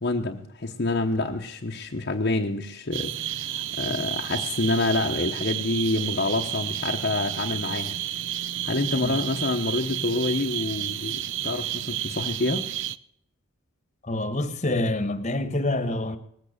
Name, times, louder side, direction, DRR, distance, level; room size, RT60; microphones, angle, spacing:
voice 1, 0.0-8.0 8.6-12.7, left 2 dB, 50° left, 1.1 m, -27 dB
sound 1, 2.9-13.0, right 11 dB, 60° right, 0.6 m, -31 dB
voice 2, 14.0-16.2, left 1 dB, 35° left, 1.5 m, -27 dB
19.5 x 8.8 x 6.7 m
head